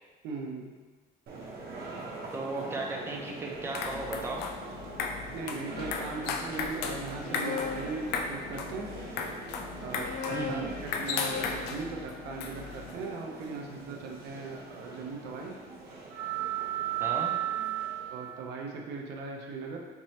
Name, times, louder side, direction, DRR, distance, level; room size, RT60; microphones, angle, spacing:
voice 1, 0.2-0.8 5.3-8.9 9.8-15.6 18.1-19.8, right 4 dB, 85° right, 0 dB, 0.6 m, -39 dB
sound 1, 1.3-18.4, right 8 dB, 65° right, 1.0 m, -39 dB
voice 2, 2.3-4.5 10.3-10.8 17.0-17.4, right 2 dB, 15° right, -1 dB, 0.6 m, -36 dB
sound 2, 3.5-13.0, left 5 dB, 85° left, 0.4 m, -37 dB
sound 3, 7.1-8.9 9.7-13.8, left 4 dB, 50° left, 0.7 m, -41 dB
4.4 x 3.1 x 2.8 m, 1.4 s
cardioid pair, 110°, 17 cm